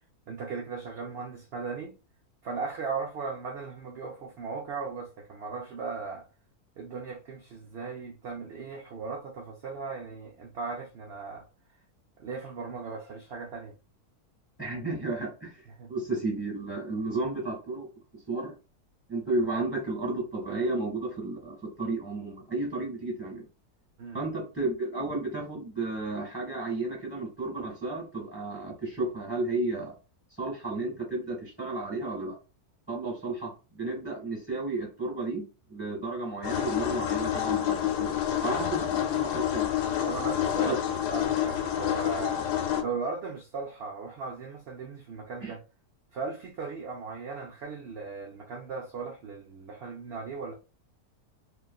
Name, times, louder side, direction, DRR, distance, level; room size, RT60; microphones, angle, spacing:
voice 1, 0.3-2.0 2.4-6.3 6.8-11.5 12.2-13.7 15.8-15.9 24.0-24.2 40.0-42.4 42.8-45.6 46.1-50.5, right 4 dB, 65° right, 0.6 m, -37 dB
voice 2, 14.6-15.6 15.9-17.9 18.3-18.5 19.1-23.4 24.1-29.9 30.4-32.4 32.9-35.4 35.7-38.1 38.4-39.7 40.7-40.8 45.4-45.5, right 2 dB, 10° left, 1.2 m, -32 dB
sound 1, 36.4-42.8, left 10 dB, 85° left, 1.1 m, -28 dB
3.1 x 2.3 x 2.3 m
omnidirectional pair, 1.7 m